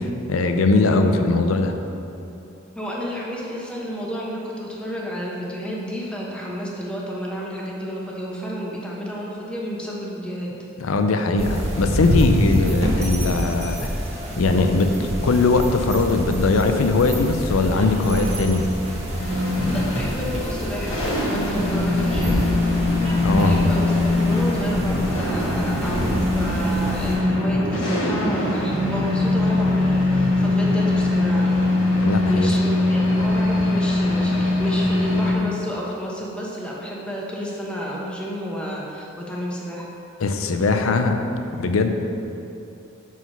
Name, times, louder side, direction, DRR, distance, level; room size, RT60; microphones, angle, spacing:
voice 1, 0.0-1.8 10.8-13.9 14.4-18.7 19.6-19.7 23.2-23.7 32.0-32.5 40.2-41.1 41.6-41.9, left 3 dB, 90° left, 6 dB, 0.5 m, -20 dB
voice 2, 2.7-10.5 19.6-21.0 21.2-22.4 23.4-31.7 32.3-39.9, equal, 5° left, -4 dB, 1.0 m, -31 dB
sound 1, 11.4-27.2, equal, 30° right, 1.3 m, -27 dB
sound 2, 19.2-35.3, left 2 dB, 70° left, 1.5 m, -22 dB
5.8 x 4.9 x 5.6 m, 2.8 s
head